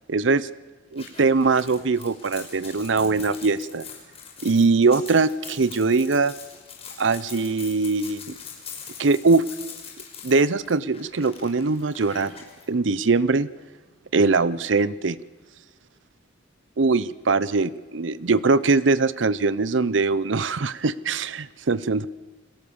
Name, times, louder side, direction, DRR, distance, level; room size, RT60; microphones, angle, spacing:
voice 1, 0.1-0.5 0.9-3.9 4.4-6.3 7.0-8.4 9.0-9.5 10.2-12.3 12.7-13.5 14.1-15.2 16.8-22.1, right 4 dB, 75° right, 17 dB, 0.7 m, -22 dB
sound 1, 0.9-12.6, left 7 dB, 35° left, 5.8 m, -42 dB
30.0 x 21.5 x 7.1 m, 1.3 s
head